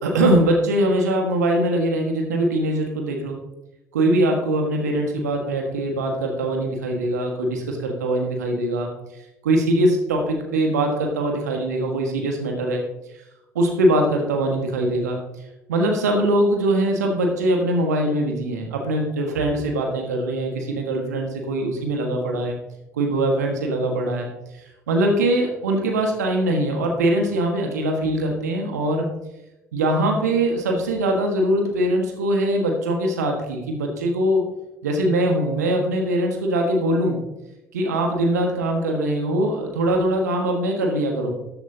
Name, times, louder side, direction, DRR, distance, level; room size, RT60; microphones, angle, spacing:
voice 1, 0.0-3.4 3.9-8.9 9.4-12.8 13.5-15.2 15.7-22.6 22.9-24.3 24.5-29.1 29.7-34.5 34.8-37.2 37.7-41.3, right 1 dB, 75° right, 2 dB, 1.6 m, -22 dB
13.0 x 7.9 x 2.8 m, 0.92 s
figure-of-eight pair, 55°, 9 cm